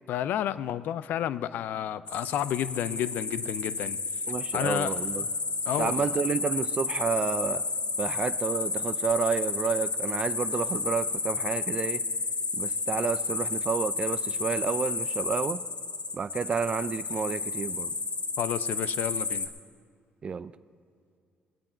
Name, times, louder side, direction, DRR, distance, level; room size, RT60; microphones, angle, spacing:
voice 1, 0.1-4.0 4.5-5.0 5.7-6.1 18.4-19.5, left 11 dB, 75° left, 0.4 m, -31 dB
sound 1, 2.1-19.5, left 4 dB, 35° left, 1.0 m, -31 dB
voice 2, 4.3-5.3 5.8-7.7 8.0-12.0 12.5-15.6 16.1-17.9 20.2-20.5, right 6 dB, 35° right, 0.4 m, -30 dB
19.5 x 8.6 x 4.5 m
cardioid pair, 100°, 3 cm